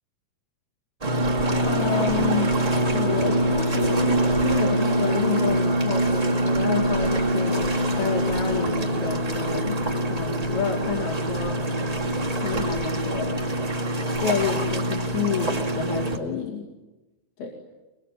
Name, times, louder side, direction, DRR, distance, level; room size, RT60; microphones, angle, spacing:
Boat on the Gulf of Finland, 1.0-16.2, right 1 dB, 20° right, 1.1 m, -24 dB
sound 1, 1.5-5.2, left 4 dB, 90° left, 0.6 m, -37 dB
voice 1, 1.6-2.5 2.9-11.6 12.4-13.5 14.2-16.7 17.4-17.5, left 7 dB, 70° left, -1 dB, 4.4 m, -29 dB
23.5 x 23.0 x 9.6 m, 1.1 s
omnidirectional pair, 4.6 m